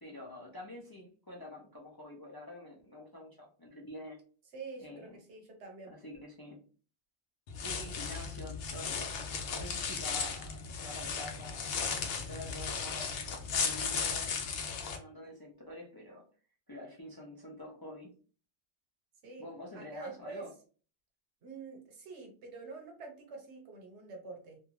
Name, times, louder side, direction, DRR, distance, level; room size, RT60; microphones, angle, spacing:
voice 1, 0.0-4.2 4.8-5.2 5.9-6.6 7.6-13.2 13.5-14.5 14.9-16.2 16.7-18.1 19.4-20.5, left 1 dB, 35° left, -3 dB, 0.3 m, -47 dB
voice 2, 4.5-5.9 19.2-19.5 19.7-20.5 21.4-24.6, right 4 dB, 90° right, 1 dB, 1.1 m, -46 dB
sound 1, 7.5-15.0, left 5 dB, 70° left, 0.8 m, -36 dB
2.5 x 2.3 x 3.0 m, 0.40 s
omnidirectional pair, 1.1 m